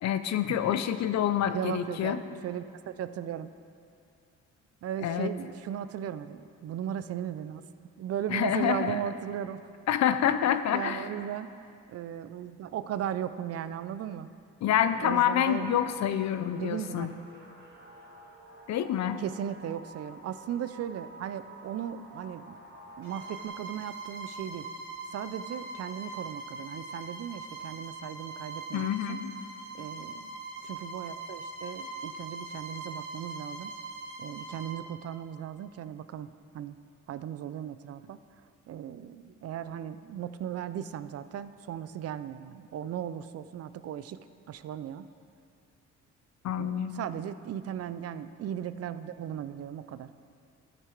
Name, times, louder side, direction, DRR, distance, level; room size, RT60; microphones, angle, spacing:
voice 1, 0.0-2.2 5.0-5.3 8.3-9.0 9.9-11.1 14.6-17.1 18.7-19.2 28.7-29.3 46.4-47.1, left 10 dB, 65° left, 11 dB, 0.6 m, -27 dB
voice 2, 1.5-3.5 4.8-7.6 8.0-9.6 10.7-11.5 11.9-14.3 14.8-16.0 16.6-17.2 19.2-22.6 23.0-24.7 25.1-29.2 29.7-33.7 34.2-36.3 36.5-36.7 37.1-38.2 38.7-44.2 44.5-45.1 46.5-50.1, right 10 dB, 55° right, 13 dB, 0.4 m, -37 dB
sound 1, 15.4-23.5, right 1 dB, 35° right, 1.8 m, -50 dB
Bowed string instrument, 23.0-34.8, right 3 dB, 75° right, 2.4 m, -41 dB
13.0 x 5.9 x 4.5 m, 2.4 s
cardioid pair, 90°, 30 cm